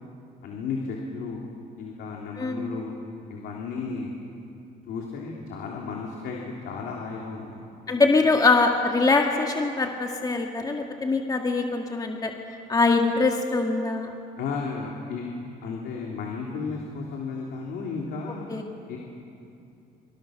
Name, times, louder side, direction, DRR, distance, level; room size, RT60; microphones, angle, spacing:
voice 1, 0.4-1.4 1.8-2.9 3.3-4.2 4.9-6.4 6.6-7.6 14.4-15.3 15.6-18.4 18.9-19.0, left 4 dB, 75° left, -1 dB, 3.4 m, -33 dB
voice 2, 2.4-2.7 7.9-12.3 12.7-14.1 18.5-18.7, left 3 dB, 20° left, 2 dB, 1.9 m, -23 dB
26.5 x 26.0 x 6.6 m, 2.6 s
cardioid pair, 110°, 17 cm